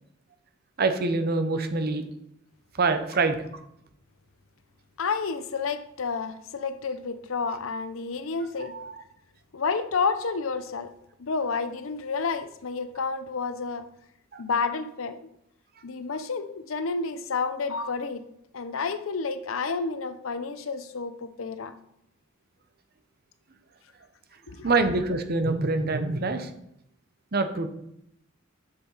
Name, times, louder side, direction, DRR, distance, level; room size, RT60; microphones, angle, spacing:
voice 1, 0.8-2.1 2.8-3.4 8.6-9.0 14.3-14.4 24.6-26.5 27.3-27.7, right 3 dB, 50° right, 8 dB, 0.8 m, -25 dB
voice 2, 5.0-8.7 9.5-10.9 11.2-13.9 14.4-15.3 15.8-18.2 18.5-21.7 24.5-24.7, left 4 dB, 85° left, 11 dB, 0.6 m, -30 dB
6.9 x 6.8 x 4.0 m, 0.76 s
head